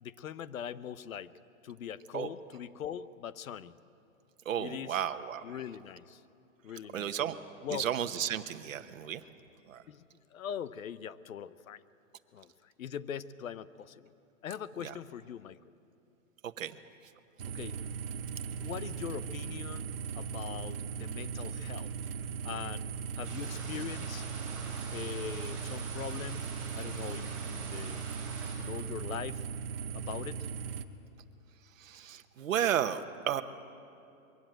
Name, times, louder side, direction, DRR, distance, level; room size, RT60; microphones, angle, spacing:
voice 1, 0.0-1.3 1.6-3.8 4.6-5.0 5.4-6.2 6.6-7.1 7.6-7.9 9.9-10.0 10.3-11.8 12.3-14.1 14.4-15.6 17.5-17.8 18.6-19.9 20.1-21.9 22.4-22.8 23.2-24.3 24.9-28.0 28.6-29.4 29.9-30.5, left 9 dB, 75° left, 16 dB, 0.9 m, -41 dB
voice 2, 4.4-5.5 6.9-7.4 7.7-9.2 9.7-9.8 14.8-14.9 16.4-16.8 31.8-33.4, right 10 dB, 70° right, 9 dB, 1.1 m, -33 dB
sound 1, 17.4-30.8, right 6 dB, 45° right, 0.9 m, -38 dB
sound 2, 23.2-28.5, right 3 dB, ahead, 5.2 m, -46 dB
22.5 x 15.5 x 9.1 m, 2.7 s
hypercardioid pair, 175°, 41 cm